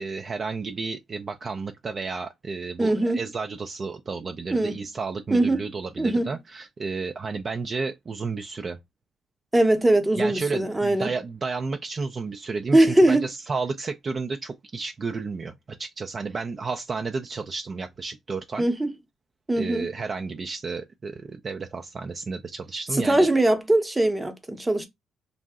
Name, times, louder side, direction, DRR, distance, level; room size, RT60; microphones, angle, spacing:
voice 1, 0.0-8.8 10.2-18.7 19.5-23.3, right 4 dB, 40° right, 0.3 m, -32 dB
voice 2, 2.8-3.2 4.5-4.8 5.3-5.7 6.0-6.3 9.5-11.1 12.7-13.2 18.6-18.9 19.5-19.9 22.9-24.9, right 1 dB, 15° right, 0.7 m, -21 dB
2.6 x 2.0 x 3.5 m
cardioid pair, 90°, 0 cm